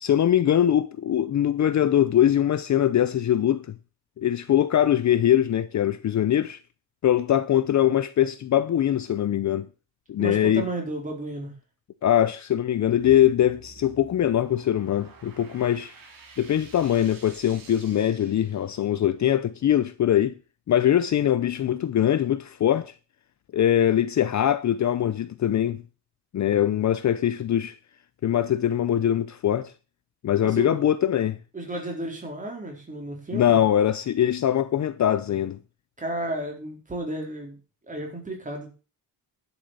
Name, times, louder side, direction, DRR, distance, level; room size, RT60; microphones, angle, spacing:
voice 1, 0.0-3.7 4.2-6.6 7.0-9.7 10.1-10.7 12.0-15.9 16.4-20.3 20.7-22.9 23.5-25.8 26.3-27.7 28.2-29.7 30.2-31.4 33.3-35.6, left 10 dB, 45° left, 0.7 m, -22 dB
voice 2, 10.2-11.5 30.4-30.8 31.5-33.6 36.0-37.6 37.9-38.7, right 2 dB, 20° right, 4.2 m, -33 dB
sound 1, 12.8-19.1, right 4 dB, 55° right, 3.6 m, -50 dB
11.5 x 7.2 x 6.4 m
wide cardioid pair, 165°, 40 cm